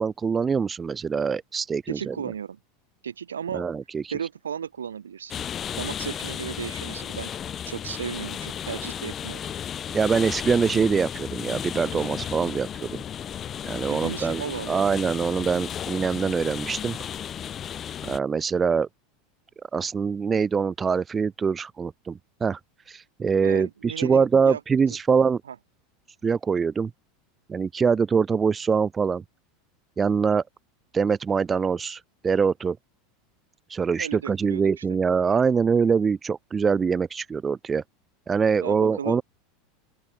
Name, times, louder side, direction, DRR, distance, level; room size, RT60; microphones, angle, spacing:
voice 1, 0.0-2.1 3.5-4.1 9.9-13.0 13.7-17.0 18.0-18.9 19.7-22.6 22.9-25.4 26.2-26.9 27.5-29.2 30.0-30.4 30.9-32.8 33.7-37.8 38.3-39.2, right 6 dB, 25° right, 0.8 m, -24 dB
voice 2, 1.9-2.6 3.0-3.6 4.1-5.3 5.8-7.3 7.6-9.5 13.8-14.8 23.4-24.6 25.5-25.6 34.0-34.8 38.6-39.2, right 8 dB, 85° right, 4.1 m, -35 dB
sound 1, 5.3-18.2, left 9 dB, 35° left, 0.8 m, -34 dB
open air
hypercardioid pair, 85°, 0 cm